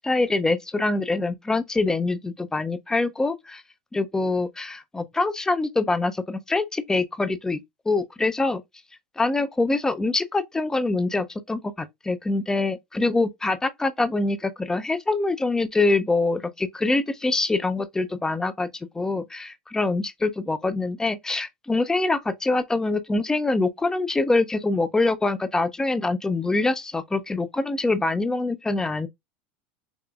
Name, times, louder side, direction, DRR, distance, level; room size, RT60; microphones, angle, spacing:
voice 1, 0.0-3.6 3.9-7.6 7.9-8.6 9.2-18.7 18.9-29.1, left 3 dB, 10° left, 0.4 m, -24 dB
3.5 x 3.2 x 2.3 m
hypercardioid pair, 95°, 6 cm